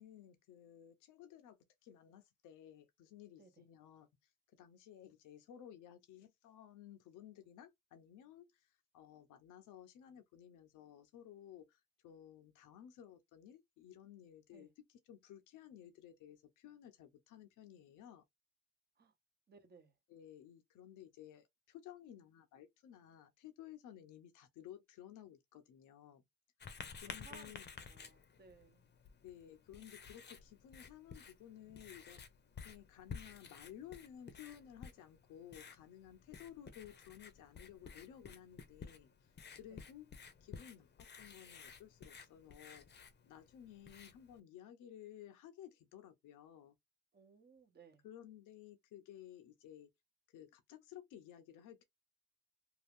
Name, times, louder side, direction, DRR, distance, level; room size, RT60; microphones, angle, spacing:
voice 1, 0.0-4.3 4.6-18.2 20.1-26.2 26.9-27.7 29.2-32.3 32.6-40.1 40.4-46.8 48.0-49.9 50.3-51.8, left 10 dB, 85° left, 0.7 m, -56 dB
voice 2, 19.5-19.9 27.1-27.6 27.9-28.8 39.7-39.8 47.1-48.0, right 4 dB, 35° right, 0.9 m, -61 dB
Writing, 26.6-44.4, left 6 dB, 35° left, 0.7 m, -54 dB
2.7 x 2.4 x 3.4 m
cardioid pair, 90°, 30 cm